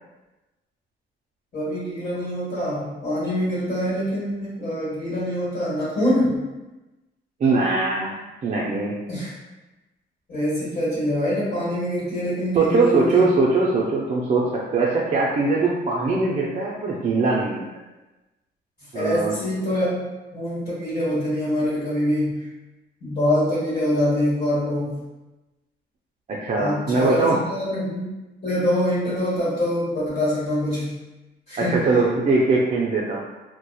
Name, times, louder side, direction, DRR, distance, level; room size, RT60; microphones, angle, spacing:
voice 1, 1.5-6.5 9.1-9.3 10.3-13.3 18.9-20.0 20.3-22.5 23.0-25.0 26.5-28.1 28.4-31.0 31.5-31.8, left 1 dB, 45° left, -12 dB, 1.3 m, -24 dB
voice 2, 7.4-8.1 8.4-8.9 12.5-17.6 18.9-19.3 26.3-27.4 31.6-33.2, right 3 dB, 35° right, -4 dB, 0.4 m, -21 dB
2.7 x 2.1 x 2.2 m, 1.1 s
cardioid pair, 90°, 20 cm